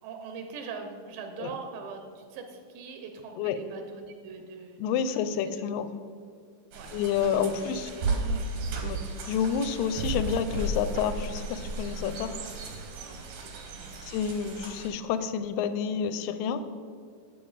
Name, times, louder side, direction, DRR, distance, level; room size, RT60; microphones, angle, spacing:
voice 1, 0.0-5.0 6.7-6.9 7.7-8.9 13.0-14.0, right 5 dB, 85° right, 4 dB, 2.4 m, -42 dB
voice 2, 4.8-5.9 6.9-7.9 8.8-9.0 9.3-12.5 14.0-16.7, left 7 dB, 85° left, 11 dB, 2.2 m, -29 dB
sound 1, 6.7-14.9, right 2 dB, 70° right, 1.5 m, -34 dB
7.5 x 7.4 x 4.0 m, 2.2 s
omnidirectional pair, 3.9 m